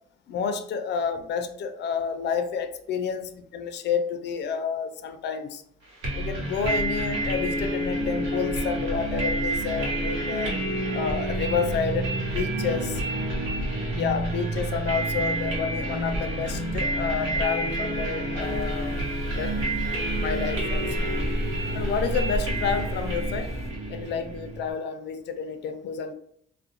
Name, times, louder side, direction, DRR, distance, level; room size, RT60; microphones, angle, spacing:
voice 1, 0.3-5.6 6.1-10.6 10.9-13.0 13.9-19.0 19.3-19.6 20.2-21.1 21.7-23.5 23.9-26.1, left 6 dB, 60° left, 8 dB, 0.4 m, -30 dB
sound 1, 6.0-24.7, right 1 dB, 90° right, 0.9 m, -29 dB
sound 2, 18.4-23.7, equal, 15° right, 0.8 m, -32 dB
2.4 x 2.1 x 2.7 m, 0.66 s
cardioid pair, 90°, 20 cm